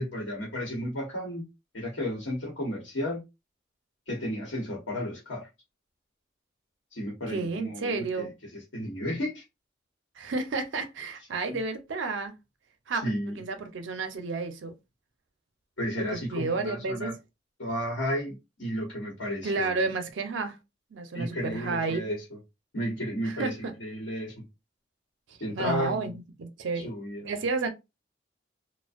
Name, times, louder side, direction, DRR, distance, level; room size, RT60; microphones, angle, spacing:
voice 1, 0.0-1.4 1.7-3.2 4.1-5.5 6.9-9.4 12.9-13.4 15.8-17.1 17.6-19.9 21.1-22.2 22.7-24.4 25.4-26.1 26.7-27.3, equal, 85° left, 1.0 m, -33 dB
voice 2, 7.3-8.3 10.2-12.3 12.9-14.7 16.0-17.1 19.4-20.6 20.9-22.0 23.2-23.7 25.3-26.9 27.2-27.7, right 3 dB, 70° right, 0.5 m, -31 dB
2.5 x 2.1 x 2.4 m
head